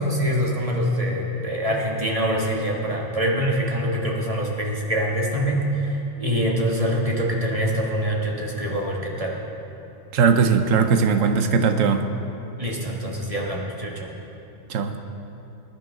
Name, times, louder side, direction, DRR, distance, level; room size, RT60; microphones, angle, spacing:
voice 1, 0.0-9.3 12.6-14.1, equal, 30° right, -2 dB, 1.7 m, -24 dB
voice 2, 10.1-12.1 14.7-15.0, right 5 dB, 80° right, 7 dB, 1.1 m, -19 dB
20.5 x 10.5 x 3.7 m, 2.9 s
omnidirectional pair, 1.3 m